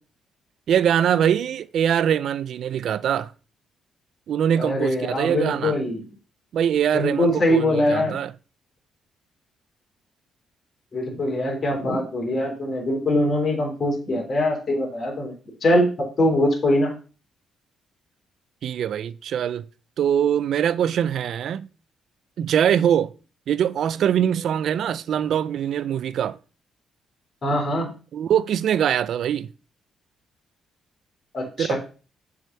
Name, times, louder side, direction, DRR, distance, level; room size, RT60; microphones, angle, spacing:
voice 1, 0.7-3.3 4.3-5.8 6.5-8.3 18.6-19.6 20.0-21.7 22.4-23.1 23.5-26.4 28.1-29.5 31.6-31.7, right 9 dB, 65° right, 0.6 m, -23 dB
voice 2, 4.6-6.0 6.9-8.2 10.9-15.3 15.6-15.9 16.2-16.9 27.4-27.9 31.3-31.8, left 1 dB, 40° left, 3.5 m, -22 dB
7.7 x 4.9 x 6.8 m
cardioid pair, 90°, 0 cm